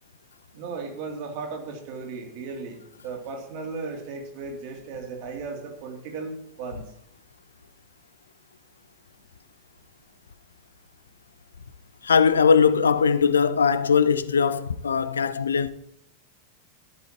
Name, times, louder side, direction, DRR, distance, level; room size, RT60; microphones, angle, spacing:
voice 1, 0.5-6.9, right 4 dB, 45° right, 2.6 m, -36 dB
voice 2, 12.0-15.7, left 6 dB, 70° left, 0.5 m, -20 dB
13.5 x 11.5 x 2.9 m
figure-of-eight pair, 90°, 0 cm